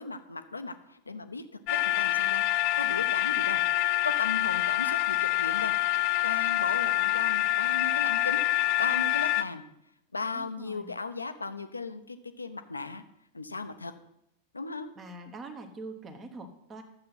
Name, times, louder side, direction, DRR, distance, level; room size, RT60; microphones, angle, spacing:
voice 1, 0.0-1.4 1.8-5.8 6.2-9.6 10.1-13.0 13.3-13.9 14.5-14.9, left 3 dB, 80° left, 10 dB, 0.8 m, -37 dB
sound 1, 1.7-9.4, left 16 dB, 40° left, 0.5 m, -26 dB
voice 2, 10.3-10.9 15.0-16.8, right 2 dB, 25° right, 5 dB, 1.2 m, -44 dB
12.0 x 7.7 x 5.8 m, 0.80 s
figure-of-eight pair, 90°, 0 cm